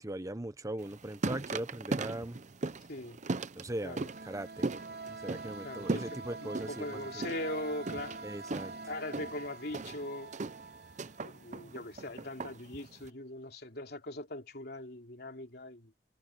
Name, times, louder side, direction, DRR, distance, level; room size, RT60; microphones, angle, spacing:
voice 1, 0.0-2.4 3.5-4.7 5.1-7.2 8.2-8.7, right 1 dB, 20° right, 1.0 m, -40 dB
sound 1, 0.8-13.1, right 3 dB, 45° right, 0.7 m, -39 dB
voice 2, 2.9-3.2 3.8-4.1 5.6-8.2 8.9-10.3 11.2-15.9, left 1 dB, 65° left, 3.3 m, -41 dB
sound 2, 3.6-12.2, right 3 dB, 65° right, 3.8 m, -46 dB
head